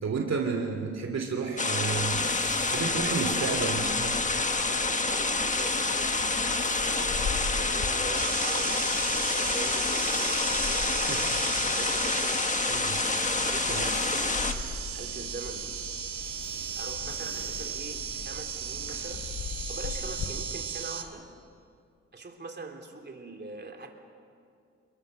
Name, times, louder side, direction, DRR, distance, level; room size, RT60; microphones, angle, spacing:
voice 1, 0.0-2.3 2.7-4.3 11.0-11.3 12.7-13.0 13.7-13.8, right 5 dB, 65° right, 3 dB, 2.6 m, -31 dB
sound 1, 1.6-14.5, left 3 dB, 25° left, 1.5 m, -28 dB
sound 2, 1.9-20.3, left 5 dB, 80° left, 4.3 m, -41 dB
voice 2, 2.8-3.5 4.5-6.2 6.7-11.3 11.7-12.4 13.4-15.7 16.8-19.3 19.7-21.2 22.1-23.9, right 3 dB, 35° right, 3 dB, 3.3 m, -42 dB
sound 3, 8.2-21.0, right 9 dB, 85° right, 2.1 m, -36 dB
29.5 x 21.5 x 6.6 m, 2.3 s
cardioid pair, 85°, 29 cm